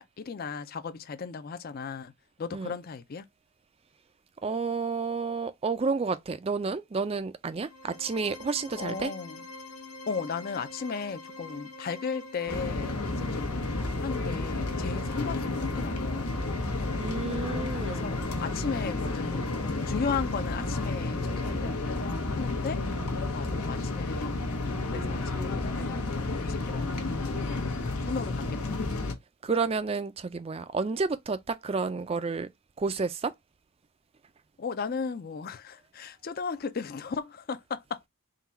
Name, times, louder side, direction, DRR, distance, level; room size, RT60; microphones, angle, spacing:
voice 1, 0.0-2.1 2.4-3.2 8.8-9.5 10.1-13.6 14.0-16.5 17.7-22.0 22.3-22.8 23.3-27.7 28.1-28.7 29.0-29.1 34.6-38.1, left 5 dB, 45° left, 0.4 m, -36 dB
voice 2, 4.4-9.1 17.0-18.1 29.4-32.5 32.8-33.3, right 4 dB, 25° right, 0.4 m, -30 dB
sound 1, 7.5-21.5, left 2 dB, 70° left, 1.2 m, -45 dB
sound 2, 12.5-29.1, left 2 dB, 85° left, 1.0 m, -31 dB
3.8 x 2.3 x 4.2 m
head